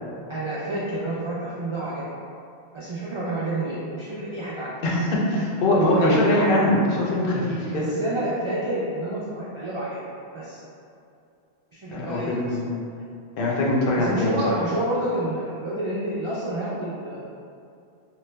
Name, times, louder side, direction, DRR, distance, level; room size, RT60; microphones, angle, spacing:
voice 1, 0.3-2.0 2.7-4.7 5.7-6.2 7.7-10.0 10.3-10.6 11.7-12.6 14.0-17.2, right 1 dB, 55° right, -9 dB, 0.3 m, -29 dB
voice 2, 4.8-7.9 11.9-12.6 13.4-14.3, left 1 dB, 65° left, -4 dB, 0.7 m, -22 dB
3.1 x 2.1 x 3.2 m, 2.5 s
omnidirectional pair, 1.1 m